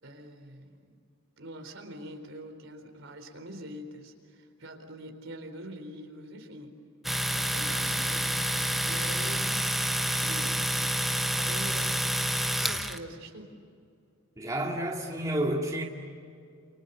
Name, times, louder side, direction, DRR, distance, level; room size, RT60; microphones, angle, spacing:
voice 1, 0.0-0.9 1.4-6.7 7.3-9.5 10.0-10.6 11.3-12.1 12.5-13.5, right 1 dB, 65° right, 4.2 m, -44 dB
Domestic sounds home sounds, 7.0-13.0, right 1 dB, ahead, 1.1 m, -28 dB
voice 2, 14.4-15.8, right 1 dB, 15° right, 2.3 m, -30 dB
29.5 x 28.5 x 6.9 m
head